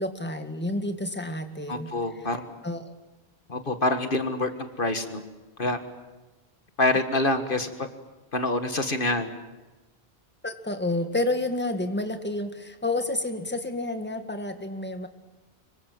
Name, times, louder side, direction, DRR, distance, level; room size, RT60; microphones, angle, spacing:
voice 1, 0.0-1.9 2.6-2.9 10.4-15.1, left 2 dB, 10° left, 6 dB, 1.9 m, -29 dB
voice 2, 1.7-2.5 3.5-5.2 5.6-5.8 6.8-7.9 8.3-9.3, left 2 dB, 55° left, 8 dB, 2.0 m, -26 dB
25.5 x 24.0 x 7.6 m, 1.1 s
omnidirectional pair, 1.1 m